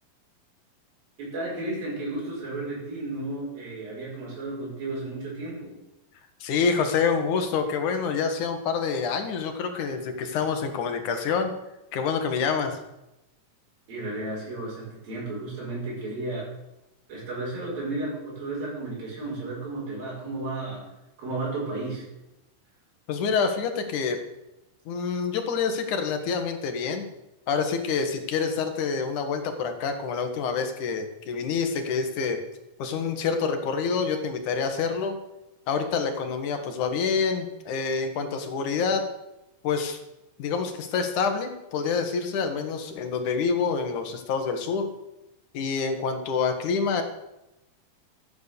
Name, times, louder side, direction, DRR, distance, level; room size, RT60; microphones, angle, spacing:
voice 1, 1.2-5.7 13.9-16.5 17.1-20.8 21.2-22.1, right 2 dB, 80° right, -5 dB, 7.5 m, -33 dB
voice 2, 6.4-11.6 11.9-12.8 23.1-24.2 24.9-27.1 27.5-32.4 32.8-35.2 35.7-39.1 39.6-40.0 40.4-44.9 45.5-47.0, left 5 dB, 65° left, 6 dB, 2.8 m, -27 dB
14.5 x 9.1 x 6.8 m, 0.93 s
omnidirectional pair, 4.0 m